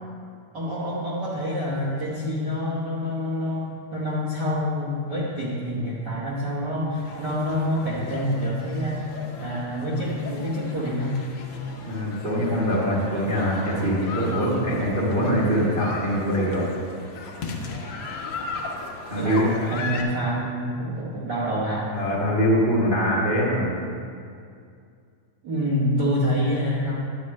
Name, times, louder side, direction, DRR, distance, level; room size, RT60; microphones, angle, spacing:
voice 1, 0.5-9.0 9.4-11.3 19.1-21.9 25.4-27.0, equal, 65° right, -7 dB, 1.0 m, -27 dB
sound 1, 7.0-20.0, left 4 dB, 85° left, 1.2 m, -37 dB
voice 2, 11.8-16.7 19.1-19.5 21.9-23.7, equal, 40° right, -6 dB, 0.7 m, -23 dB
9.8 x 9.5 x 3.2 m, 2.3 s
omnidirectional pair, 3.6 m